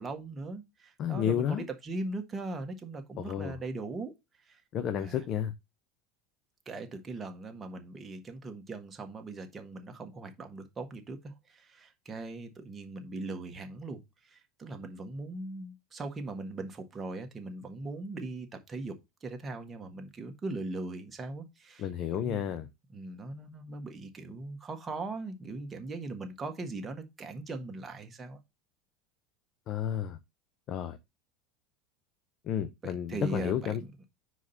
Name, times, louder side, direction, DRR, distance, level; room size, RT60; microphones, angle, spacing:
voice 1, 0.0-4.1 4.4-4.6 5.0-5.2 6.6-21.9 22.2-22.5 22.9-28.4 32.8-34.1, right 2 dB, 20° right, 1.4 m, -40 dB
voice 2, 1.0-1.6 3.2-3.5 4.7-5.5 21.8-22.7 29.7-30.2 30.7-31.0 32.5-33.8, left 9 dB, 45° left, 0.7 m, -31 dB
4.9 x 4.0 x 5.6 m
supercardioid pair, 120°, 0 cm